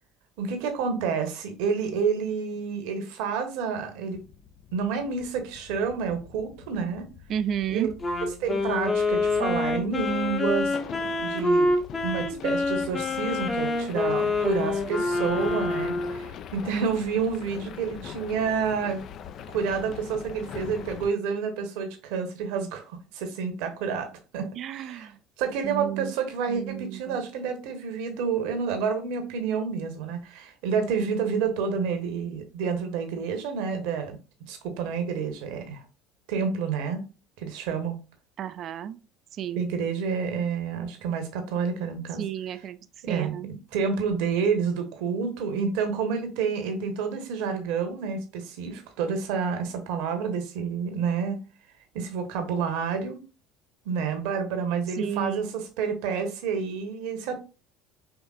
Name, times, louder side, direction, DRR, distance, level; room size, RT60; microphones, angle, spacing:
voice 1, 0.4-4.2 4.7-7.0 7.7-7.9 8.4-10.8 11.2-11.7 12.0-19.0 19.5-24.5 24.8-25.1 25.4-34.2 34.5-35.8 36.3-37.0 37.4-38.0 39.6-42.2 43.0-43.3 43.7-51.4 51.9-53.2 53.8-57.4, right 6 dB, 60° right, 0.9 m, -29 dB
sound 1, 4.1-21.1, left 8 dB, 45° left, 0.4 m, -43 dB
voice 2, 7.3-7.9 24.6-25.2 25.6-26.1 26.5-27.2 38.4-39.0 39.3-39.6 42.2-42.8 43.1-43.5 54.9-55.4, right 9 dB, 45° right, 0.4 m, -32 dB
Wind instrument woodwind instrument, 8.0-16.3, left 2 dB, 25° left, 0.9 m, -26 dB
4.9 x 3.4 x 2.4 m
figure-of-eight pair, 65°, 0 cm